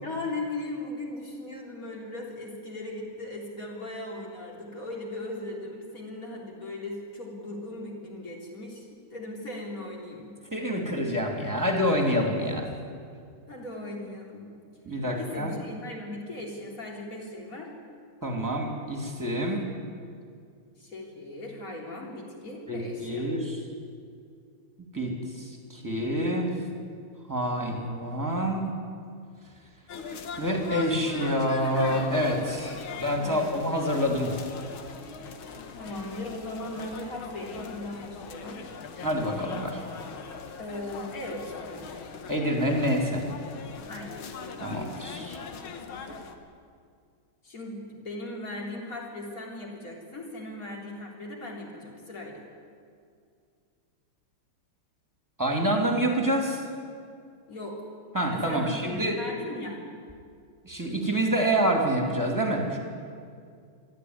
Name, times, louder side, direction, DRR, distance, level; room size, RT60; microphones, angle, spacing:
voice 1, 0.0-10.4 13.5-14.5 15.1-17.7 20.8-23.2 33.2-33.6 35.7-38.7 40.6-42.0 43.9-44.2 47.4-52.5 57.5-57.9 58.3-59.8, left 2 dB, 40° left, -1 dB, 4.0 m, -38 dB
voice 2, 10.5-12.7 14.8-15.6 18.2-19.7 22.7-23.6 24.9-26.6 27.3-28.7 30.4-34.3 39.0-39.8 42.3-43.2 44.6-45.4 55.4-56.6 58.1-59.2 60.6-62.8, equal, 10° right, 2 dB, 2.8 m, -27 dB
sound 1, 29.9-46.4, left 5 dB, 65° left, 2.2 m, -40 dB
22.0 x 14.0 x 9.7 m, 2.3 s
omnidirectional pair, 2.4 m